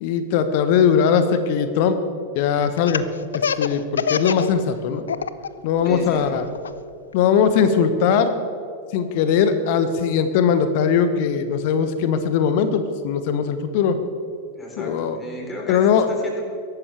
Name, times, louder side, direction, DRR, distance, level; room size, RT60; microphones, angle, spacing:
voice 1, 0.0-2.0 2.3-3.0 3.6-5.0 5.6-6.4 7.1-8.4 8.9-14.0 14.8-15.2 15.7-16.1, left 7 dB, 50° left, 10 dB, 1.1 m, -20 dB
Laughter, 2.8-4.5 4.8-5.5 5.8-7.6, left 7 dB, 70° left, 0.5 m, -25 dB
voice 2, 5.8-6.3 14.5-16.4, left 1 dB, 15° left, -2 dB, 3.8 m, -34 dB
22.5 x 12.0 x 3.5 m, 2.4 s
figure-of-eight pair, 90°, 0 cm